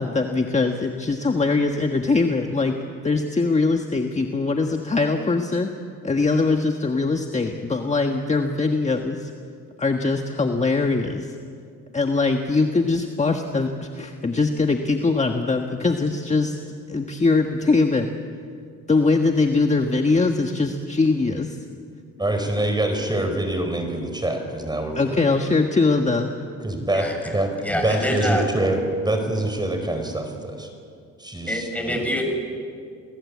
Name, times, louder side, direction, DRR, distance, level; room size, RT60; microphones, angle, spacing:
voice 1, 0.0-2.8 3.0-5.7 6.0-9.3 9.8-11.3 11.9-16.6 16.9-18.1 18.9-21.6 24.9-26.3, left 3 dB, 25° left, 4 dB, 1.5 m, -22 dB
voice 2, 22.2-25.2 26.6-30.7 31.2-32.0, right 1 dB, 15° right, 5 dB, 5.0 m, -25 dB
voice 3, 26.9-27.3 27.6-28.5 31.5-32.3, equal, 5° left, 3 dB, 6.6 m, -25 dB
28.5 x 19.5 x 8.6 m, 2.3 s
cardioid pair, 90°, 30 cm